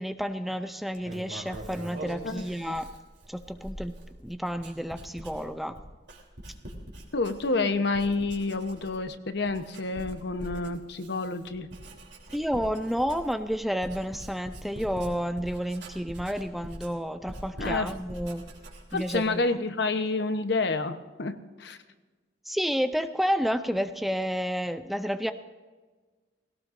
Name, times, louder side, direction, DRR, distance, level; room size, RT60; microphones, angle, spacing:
voice 1, 0.0-2.9 3.3-3.9 4.2-5.8 7.5-7.7 12.3-18.5 18.9-19.4 22.5-25.3, equal, ahead, 9 dB, 0.4 m, -30 dB
Writing, 0.9-7.7 7.9-9.1 9.4-19.4, right 1 dB, 65° right, 3.3 m, -43 dB
voice 2, 7.1-11.7 17.6-17.9 18.9-21.8, left 3 dB, 65° left, 9 dB, 1.0 m, -29 dB
20.0 x 17.5 x 2.6 m, 1.3 s
head